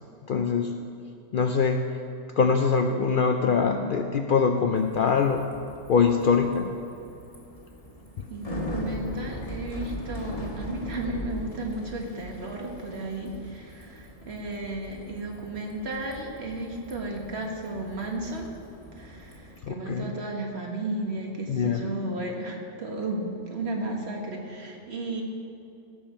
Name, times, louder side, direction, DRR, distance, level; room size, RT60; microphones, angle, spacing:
voice 1, 0.3-0.8 1.3-1.8 2.4-5.5 5.9-6.7 19.6-20.1 21.5-21.8, left 5 dB, 60° left, 5 dB, 0.6 m, -23 dB
Bicycle, 4.8-19.6, left 1 dB, 30° left, 1.3 m, -40 dB
voice 2, 8.3-18.6 18.9-25.2, right 2 dB, 60° right, 1 dB, 1.6 m, -34 dB
16.0 x 7.1 x 4.4 m, 2.7 s
omnidirectional pair, 1.3 m